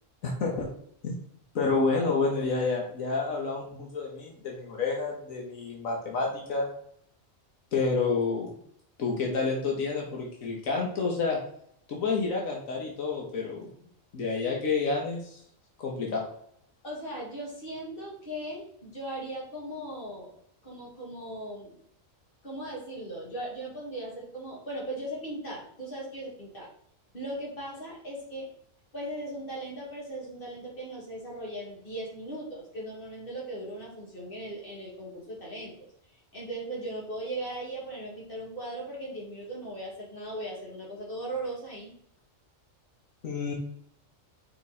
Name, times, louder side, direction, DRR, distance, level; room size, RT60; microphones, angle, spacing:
voice 1, 0.2-0.7 1.0-1.1 1.5-6.7 7.7-8.5 9.0-11.4 11.9-13.7 14.1-15.4 15.8-16.2 43.2-43.5, left 4 dB, 85° left, -1 dB, 1.6 m, -29 dB
voice 2, 16.8-20.3 20.6-21.7 22.4-26.7 27.1-28.5 28.9-35.7 36.3-41.9, right 1 dB, 45° left, -4 dB, 2.4 m, -38 dB
5.4 x 4.1 x 4.2 m, 0.66 s
omnidirectional pair, 1.4 m